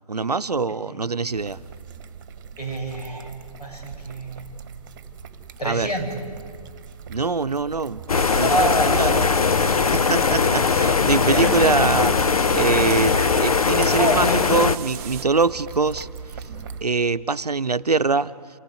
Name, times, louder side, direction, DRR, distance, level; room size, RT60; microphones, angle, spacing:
voice 1, 0.1-1.6 5.6-5.9 7.1-8.0 8.4-8.5 8.9-9.3 9.9-16.1 16.8-18.3, right 4 dB, 80° right, 14 dB, 0.7 m, -23 dB
sound 1, 1.3-16.9, right 7 dB, 30° right, 1.5 m, -39 dB
voice 2, 2.6-3.3 3.6-4.4 5.6-6.2 8.4-9.0 11.2-11.7 13.2-13.3 13.9-14.5, right 1 dB, 90° left, 0 dB, 8.0 m, -26 dB
sound 2, 8.1-14.8, left 5 dB, 65° left, 0.7 m, -20 dB
sound 3, 8.1-15.2, right 9 dB, 15° right, 0.7 m, -37 dB
27.5 x 15.5 x 9.2 m, 2.1 s
figure-of-eight pair, 140°, 20 cm